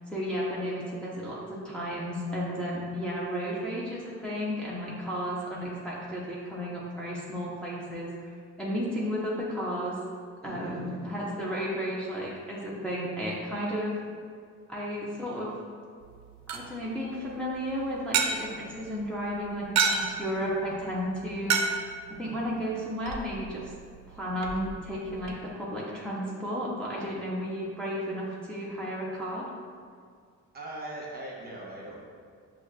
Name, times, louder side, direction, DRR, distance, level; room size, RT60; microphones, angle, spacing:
voice 1, 0.1-10.0 10.4-13.9 14.7-15.5 16.5-21.6 22.1-23.7 24.1-29.5, equal, 5° left, -7 dB, 0.6 m, -33 dB
voice 2, 10.4-11.1 30.5-32.0, right 1 dB, 30° right, -3 dB, 0.9 m, -40 dB
sound 1, 16.0-25.3, right 5 dB, 65° right, 0.5 m, -33 dB
5.9 x 2.4 x 2.2 m, 2.1 s
cardioid pair, 90°, 30 cm